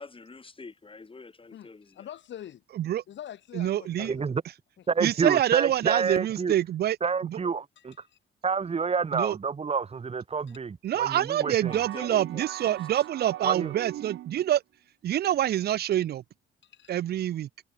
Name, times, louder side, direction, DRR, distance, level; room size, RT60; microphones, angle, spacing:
voice 1, 0.0-2.1 11.4-13.1, left 4 dB, 25° left, 6.6 m, -47 dB
voice 2, 1.5-2.6 3.1-4.3 5.1-5.2 7.8-8.2 10.5-10.6 16.6-16.9, left 10 dB, 65° left, 2.6 m, -45 dB
voice 3, 3.5-4.2 5.0-7.0 7.2-7.4 9.1-9.4 10.8-14.6 15.0-16.2 16.9-17.5, right 12 dB, 55° right, 0.5 m, -26 dB
voice 4, 4.1-4.4 4.9-6.5 7.0-7.9 8.4-11.8 13.4-13.7, right 5 dB, 30° right, 1.1 m, -28 dB
sound 1, 11.6-14.5, right 13 dB, 75° right, 1.7 m, -40 dB
cardioid pair, 90°, 20 cm